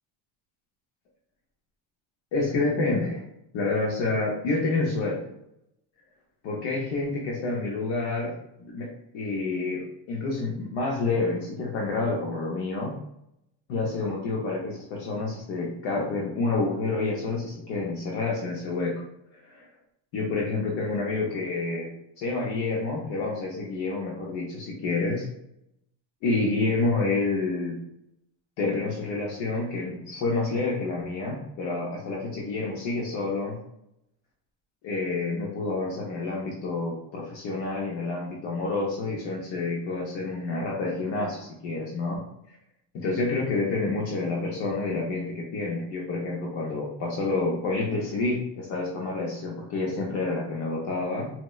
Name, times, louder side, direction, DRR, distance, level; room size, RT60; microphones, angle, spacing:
voice 1, 2.3-3.2 3.5-5.2 6.4-8.3 8.6-8.9 9.1-12.9 13.7-19.0 19.3-19.7 20.1-21.9 22.2-25.3 26.2-27.8 28.6-33.6 34.8-42.2 42.9-51.3, left 3 dB, 70° left, -3 dB, 0.8 m, -28 dB
4.2 x 2.1 x 2.3 m, 0.82 s
cardioid pair, 125°, 46 cm